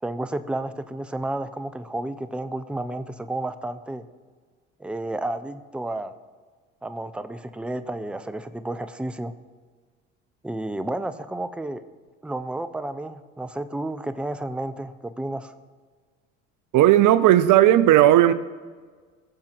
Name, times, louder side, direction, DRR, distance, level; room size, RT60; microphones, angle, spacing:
voice 1, 0.0-4.1 4.8-6.1 6.8-9.3 10.4-11.8 12.2-15.5, right 1 dB, 5° right, 0.7 m, -31 dB
voice 2, 16.7-18.3, right 13 dB, 55° right, 0.7 m, -15 dB
19.5 x 7.3 x 4.7 m
hypercardioid pair, 65°, 37 cm